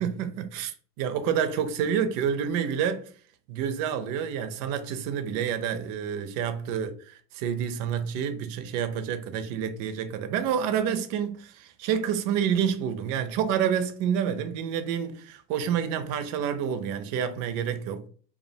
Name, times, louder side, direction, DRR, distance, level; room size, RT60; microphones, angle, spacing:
voice 1, 0.0-3.1 3.5-18.1, right 8 dB, 45° right, 0.4 m, -28 dB
2.4 x 2.0 x 2.7 m
hypercardioid pair, 100°, 47 cm